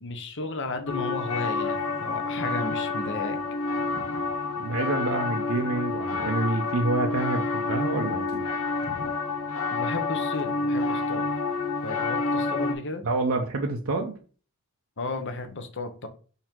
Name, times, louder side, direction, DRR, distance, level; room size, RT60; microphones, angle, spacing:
voice 1, 0.0-3.4 9.7-11.2 11.8-13.0 15.0-16.1, left 3 dB, 55° left, 7 dB, 1.0 m, -34 dB
sound 1, 0.9-12.7, left 3 dB, 90° left, 1.1 m, -28 dB
voice 2, 4.6-8.5 13.0-14.2, right 2 dB, 65° right, 2 dB, 0.8 m, -27 dB
5.2 x 4.1 x 4.5 m, 0.39 s
head